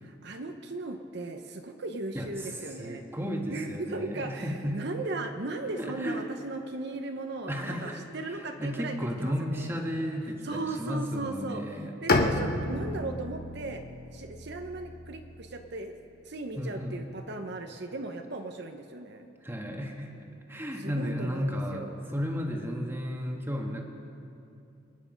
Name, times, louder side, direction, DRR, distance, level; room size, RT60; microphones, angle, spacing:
voice 1, 0.0-3.0 3.5-9.7 10.4-13.8 14.1-15.9 16.2-19.3 20.8-22.0, right 2 dB, 60° right, 5 dB, 0.9 m, -37 dB
voice 2, 2.1-4.8 5.8-6.3 7.5-8.0 8.3-12.0 16.6-17.1 19.4-23.8, equal, 10° right, 1 dB, 1.5 m, -34 dB
Bowed string instrument, 12.1-16.0, left 2 dB, 50° left, 1.1 m, -31 dB
27.0 x 9.6 x 5.2 m, 2.6 s
head